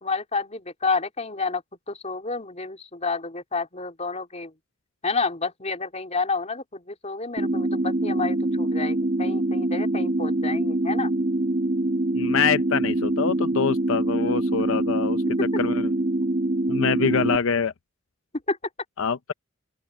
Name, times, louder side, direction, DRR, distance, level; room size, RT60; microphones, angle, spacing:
voice 1, 0.0-4.5 5.0-11.1 14.8-14.9 15.4-15.5 18.5-18.6, left 4 dB, 35° left, 3.9 m, -29 dB
sound 1, 7.4-17.4, right 2 dB, 40° right, 2.1 m, -24 dB
voice 2, 12.1-15.2 15.6-15.9 16.7-17.7 19.0-19.3, left 6 dB, 70° left, 0.6 m, -25 dB
open air
head